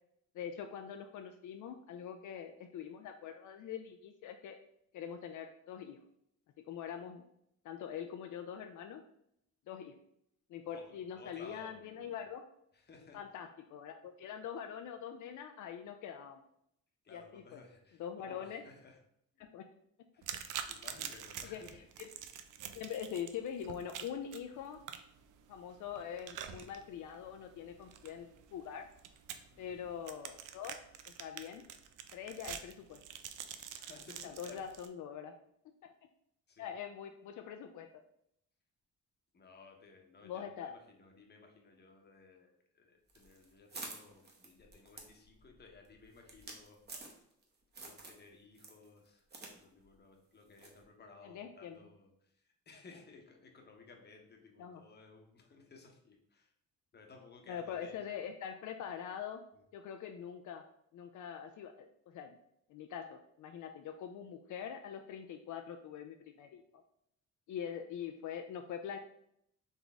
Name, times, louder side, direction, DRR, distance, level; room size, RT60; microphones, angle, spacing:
voice 1, 0.3-4.6 4.9-6.0 6.6-7.2 7.6-9.0 9.7-9.9 10.5-12.4 13.1-16.4 17.1-17.6 18.0-18.6 19.4-19.7 21.4-21.6 22.0-22.1 22.7-24.8 25.5-28.9 29.6-31.6 32.1-33.0 34.2-35.3 35.8-35.9 36.6-37.9 40.2-40.7 51.2-51.8 54.6-54.8 57.5-59.4 59.7-60.6 60.9-62.4 62.7-66.8 67.5-69.0, left 8 dB, 75° left, 5 dB, 0.5 m, -44 dB
voice 2, 10.7-12.1 12.7-13.2 17.0-19.0 19.4-19.5 20.1-21.8 29.5-29.9 33.7-34.6 36.5-36.7 39.3-47.2 47.8-56.5 56.9-58.2, left 4 dB, 35° left, 2 dB, 0.9 m, -57 dB
sound 1, 20.2-34.9, right 9 dB, 80° right, 0.5 m, -47 dB
sound 2, 43.1-47.4 47.7-48.2 48.6-49.5 49.8-49.9 50.6-50.8, right 3 dB, 35° right, 0.9 m, -49 dB
4.1 x 3.4 x 3.5 m, 0.74 s
cardioid pair, 120°, 30 cm